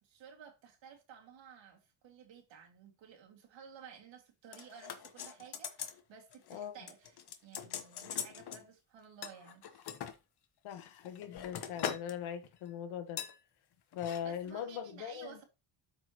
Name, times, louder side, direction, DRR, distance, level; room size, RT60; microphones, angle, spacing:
voice 1, 0.0-9.9 14.2-15.4, right 7 dB, 70° right, 2.2 m, -54 dB
sound 1, 4.5-6.0 6.3-6.6 6.9-8.6 9.2-10.2 10.8-12.1 12.4-12.7 13.2-13.4 13.9-14.2 14.5-14.6, left 8 dB, 55° left, 1.2 m, -42 dB
voice 2, 10.6-13.2 13.9-15.4, left 9 dB, 90° left, 1.4 m, -40 dB
12.0 x 4.9 x 3.0 m
cardioid pair, 115°, 47 cm